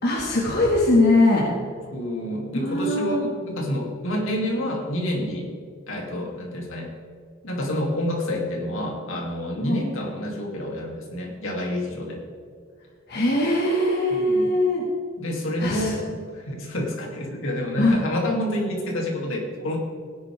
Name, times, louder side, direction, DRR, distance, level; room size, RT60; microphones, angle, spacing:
voice 1, 0.0-1.5 2.6-3.3 9.6-9.8 13.1-14.8 15.6-15.9 17.8-18.0, left 2 dB, 50° left, -4 dB, 2.1 m, -21 dB
voice 2, 1.9-5.5 5.9-6.9 7.4-12.2 14.1-14.5 15.2-19.8, left 1 dB, 65° left, -1 dB, 2.9 m, -28 dB
18.0 x 10.5 x 3.6 m, 2.2 s
head